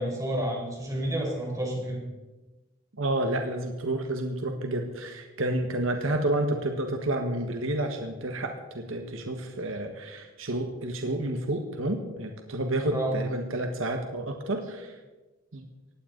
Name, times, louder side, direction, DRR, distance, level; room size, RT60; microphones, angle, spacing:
voice 1, 0.0-2.0 12.9-13.2, right 1 dB, 15° right, -1 dB, 4.4 m, -30 dB
voice 2, 3.0-15.0 15.5-15.6, right 1 dB, 70° right, 4 dB, 1.5 m, -30 dB
19.0 x 15.5 x 4.0 m, 1.2 s
head